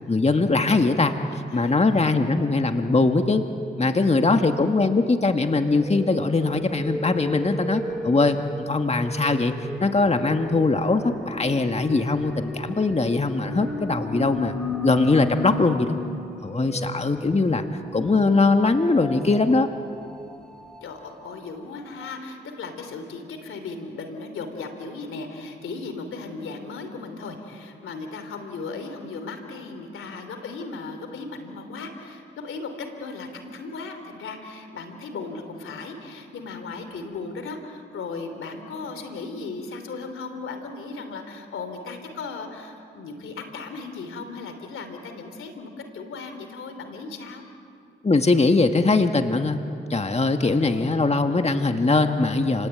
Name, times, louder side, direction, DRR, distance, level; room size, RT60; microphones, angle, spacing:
voice 1, 0.1-1.1 1.5-3.4 3.8-8.4 8.7-9.5 9.8-14.5 14.8-15.9 16.4-17.6 17.9-19.7 48.0-49.6 49.9-52.7, left 3 dB, 30° left, 6 dB, 1.7 m, -21 dB
voice 2, 1.5-2.3 3.9-4.4 16.6-17.2 20.8-47.4 50.5-50.9, left 4 dB, 85° left, 7 dB, 3.1 m, -37 dB
sound 1, 4.1-4.3 5.4-21.3 21.8-21.9 22.0-22.1, left 2 dB, 5° left, 3.0 m, -35 dB
30.0 x 20.0 x 8.9 m, 2.5 s
cardioid pair, 50°, 20 cm